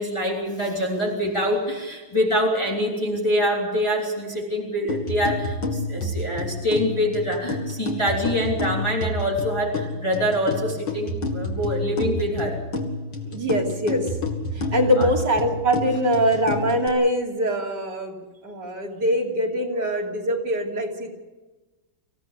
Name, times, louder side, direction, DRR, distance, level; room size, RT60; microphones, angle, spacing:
voice 1, 0.0-12.6 15.0-15.1, equal, 15° left, -2 dB, 3.4 m, -25 dB
sound 1, 4.9-16.9, left 2 dB, 70° left, 2.9 m, -29 dB
voice 2, 13.3-14.1 14.5-18.2 18.4-21.1, equal, 60° right, 0 dB, 3.6 m, -23 dB
25.0 x 16.5 x 8.3 m, 1.2 s
omnidirectional pair, 2.0 m